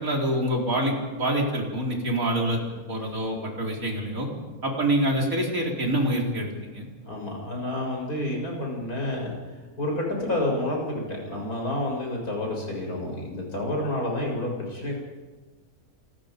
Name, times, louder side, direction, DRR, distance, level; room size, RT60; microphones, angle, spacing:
voice 1, 0.0-2.6 2.9-4.3 4.6-6.9, right 1 dB, 65° right, -1 dB, 4.8 m, -26 dB
voice 2, 7.1-9.4 9.8-15.0, left 1 dB, 85° left, -1 dB, 7.6 m, -29 dB
28.0 x 21.5 x 5.3 m, 1.3 s
omnidirectional pair, 1.5 m